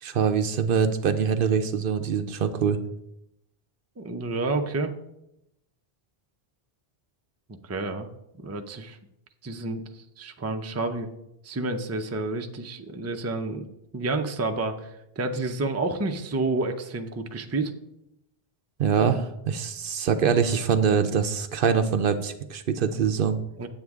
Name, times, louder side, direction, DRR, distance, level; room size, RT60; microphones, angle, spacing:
voice 1, 0.0-2.8 18.8-23.4, right 7 dB, 65° right, 10 dB, 0.7 m, -24 dB
voice 2, 4.0-4.9 7.5-8.1 8.4-9.0 9.4-9.8 10.2-11.1 11.4-13.7 13.9-17.7 23.6-23.7, right 2 dB, 20° right, 5 dB, 0.4 m, -29 dB
8.7 x 7.9 x 3.6 m, 0.84 s
omnidirectional pair, 1.0 m